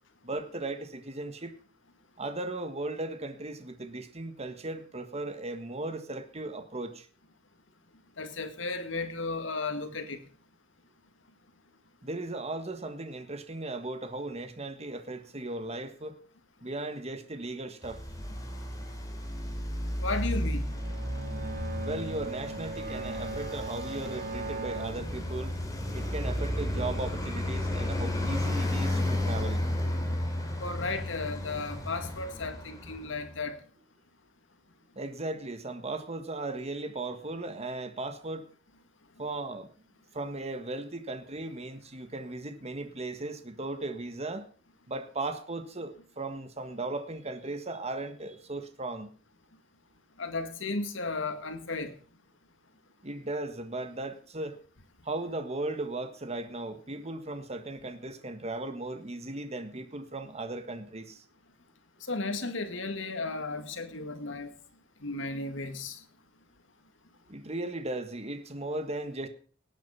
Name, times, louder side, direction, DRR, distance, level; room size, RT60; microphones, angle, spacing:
voice 1, 0.2-1.5 2.2-6.9 12.0-16.1 16.6-18.0 21.8-25.5 25.9-29.6 35.0-38.4 39.2-39.7 40.1-44.4 44.9-49.1 53.0-54.5 55.1-61.1 67.3-69.3, right 2 dB, 35° right, 1.5 m, -37 dB
voice 2, 8.2-10.2 20.0-20.8 30.6-33.6 50.2-51.9 62.1-64.5 65.0-66.0, left 3 dB, 75° left, 2.0 m, -34 dB
Traffic noise roadway noise, 17.8-33.3, left 1 dB, 20° left, 3.2 m, -33 dB
Bowed string instrument, 20.7-25.9, right 2 dB, 50° right, 2.2 m, -39 dB
18.5 x 9.0 x 5.7 m
head